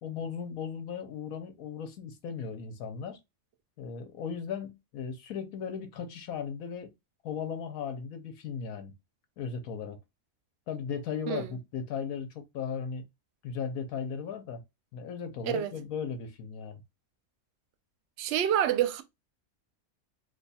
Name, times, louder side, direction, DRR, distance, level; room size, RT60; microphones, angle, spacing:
voice 1, 0.0-3.2 3.8-6.9 7.2-8.9 9.4-10.0 10.7-13.0 13.4-14.6 14.9-16.8, left 6 dB, 85° left, 1.2 m, -37 dB
voice 2, 18.2-19.0, right 10 dB, 65° right, 0.7 m, -27 dB
3.0 x 2.3 x 4.0 m
omnidirectional pair, 1.5 m